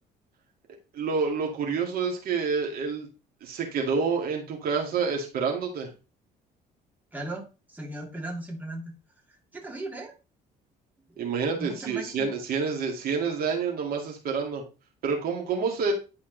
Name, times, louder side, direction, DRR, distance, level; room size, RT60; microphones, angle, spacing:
voice 1, 0.9-3.1 3.4-5.9 11.2-14.6 15.0-15.9, right 5 dB, 60° right, 1 dB, 2.2 m, -28 dB
voice 2, 7.1-7.4 7.7-8.9 9.5-10.1 11.1-11.2 11.5-12.3, right 1 dB, 10° right, -1 dB, 2.6 m, -37 dB
11.0 x 4.2 x 3.9 m, 0.31 s
cardioid pair, 110°, 17 cm